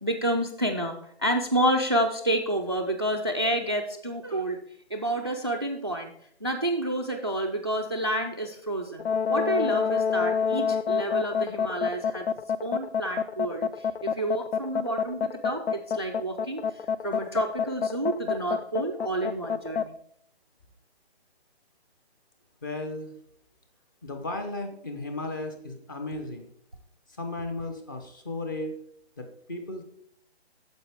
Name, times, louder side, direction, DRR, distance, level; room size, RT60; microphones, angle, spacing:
voice 1, 0.0-4.6 4.9-6.1 6.4-12.3 12.6-16.6 17.0-20.0, right 1 dB, 25° right, 5 dB, 0.3 m, -29 dB
sound 1, 9.0-19.9, left 6 dB, 75° left, 0.6 m, -27 dB
voice 2, 22.6-23.1 24.0-26.5 27.2-28.8 29.2-29.8, left 2 dB, 20° left, 6 dB, 0.6 m, -35 dB
9.2 x 7.1 x 3.4 m, 0.67 s
hypercardioid pair, 160°, 32 cm